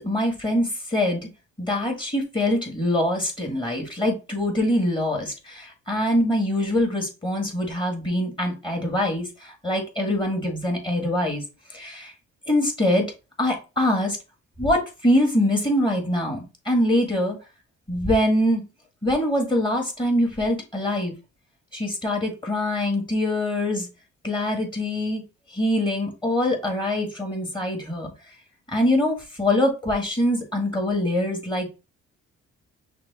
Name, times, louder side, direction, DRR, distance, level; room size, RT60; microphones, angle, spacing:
voice 1, 0.0-1.3 1.6-11.4 11.7-12.1 12.5-13.1 13.4-14.2 14.6-17.4 17.9-18.6 19.0-21.2 21.7-23.9 24.2-25.2 25.5-28.1 28.7-31.7, left 1 dB, 15° left, 1 dB, 1.7 m, -24 dB
6.0 x 2.1 x 4.1 m, 0.29 s
cardioid pair, 90°, 30 cm